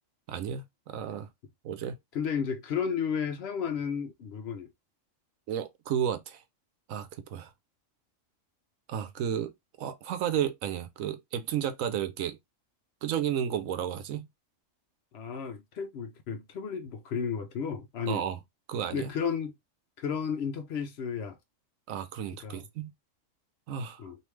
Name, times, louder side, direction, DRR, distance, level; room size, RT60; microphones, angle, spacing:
voice 1, 0.3-1.3 1.6-2.0 5.5-6.4 6.9-7.5 8.9-9.5 9.8-12.4 13.0-14.3 18.1-18.4 18.7-19.1 21.9-22.9 23.7-24.0, right 9 dB, 85° right, 1.0 m, -32 dB
voice 2, 2.1-4.7 15.1-18.2 18.9-19.6 20.0-21.4 22.4-22.6 24.0-24.2, left 6 dB, 65° left, 0.7 m, -33 dB
3.3 x 2.7 x 3.1 m
omnidirectional pair, 1.4 m